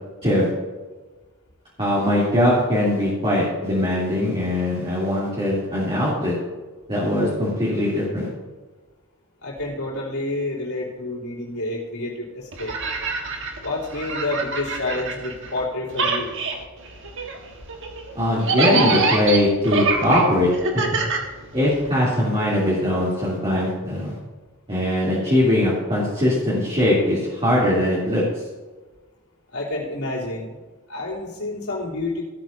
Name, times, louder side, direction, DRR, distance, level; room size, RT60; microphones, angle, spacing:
voice 1, 1.8-6.3 6.9-8.3 18.1-21.0 21.5-24.2 24.7-28.2, left 1 dB, 25° right, -9 dB, 3.0 m, -21 dB
voice 2, 9.4-12.7 13.6-16.3 29.5-30.6 30.9-32.2, left 2 dB, 85° left, -5 dB, 3.3 m, -29 dB
sound 1, 12.5-15.6 15.9-21.9, right 4 dB, 60° right, 1.5 m, -25 dB
16.5 x 9.0 x 2.7 m, 1.3 s
head